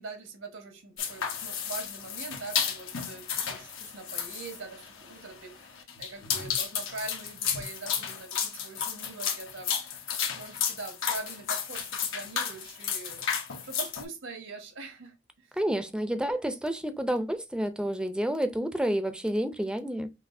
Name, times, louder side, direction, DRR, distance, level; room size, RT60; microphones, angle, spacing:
voice 1, 0.0-9.7 10.3-15.5, right 3 dB, 80° right, 1.5 m, -43 dB
sound 1, 1.0-14.0, left 7 dB, 80° left, 1.2 m, -33 dB
voice 2, 15.6-20.1, right 1 dB, 5° right, 0.6 m, -29 dB
5.8 x 2.6 x 2.6 m
head